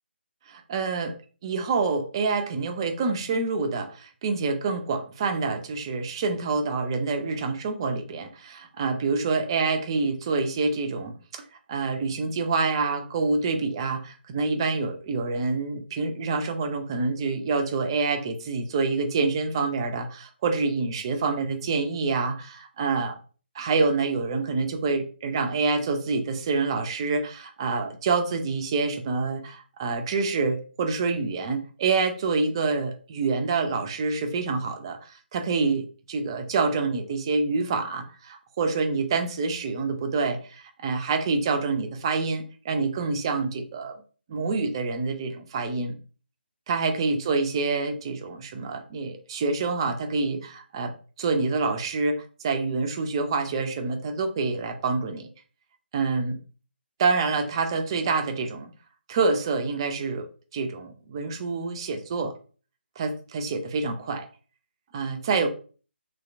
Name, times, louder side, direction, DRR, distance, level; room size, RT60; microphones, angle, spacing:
voice 1, 0.5-1.1 1.4-11.4 11.7-23.2 23.5-43.9 44.3-46.0 46.7-50.9 51.2-55.3 55.9-56.4 57.0-58.7 59.1-62.3 63.0-64.3 64.9-65.5, right 4 dB, 25° right, 6 dB, 0.4 m, -27 dB
3.0 x 2.8 x 2.5 m, 0.39 s
figure-of-eight pair, 150°, 6 cm